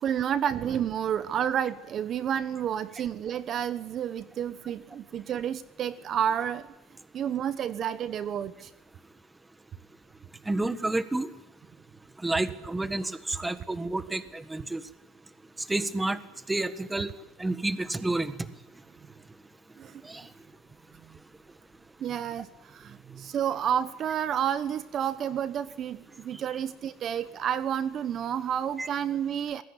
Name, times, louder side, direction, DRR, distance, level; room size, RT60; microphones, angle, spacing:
voice 1, 0.0-6.7 7.1-8.7 19.8-20.2 22.0-29.6, right 9 dB, 40° right, 13 dB, 1.1 m, -30 dB
voice 2, 10.4-11.3 12.2-14.8 15.7-16.2 16.5-17.1 17.4-18.5 20.0-20.3 28.8-28.9, right 2 dB, 10° right, 12 dB, 1.5 m, -30 dB
27.0 x 21.0 x 10.0 m, 1.0 s
cardioid pair, 140°, 0 cm